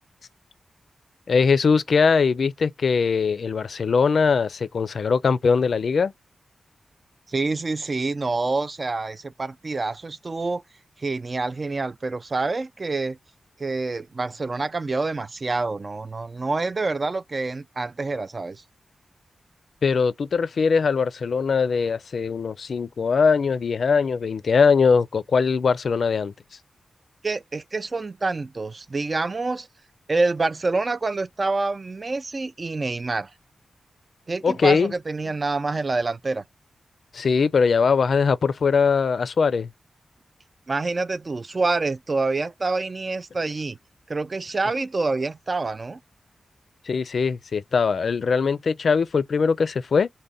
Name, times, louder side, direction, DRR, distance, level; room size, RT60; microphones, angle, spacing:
voice 1, 1.3-6.1 19.8-26.3 34.4-34.9 37.1-39.7 46.8-50.1, left 5 dB, 70° left, 0.4 m, -21 dB
voice 2, 7.3-10.6 11.0-13.2 13.6-18.6 27.2-29.7 30.1-33.3 34.3-36.4 40.7-43.8 44.1-46.0, right 3 dB, 40° right, 0.3 m, -27 dB
3.4 x 2.1 x 3.9 m
cardioid pair, 75°, 0 cm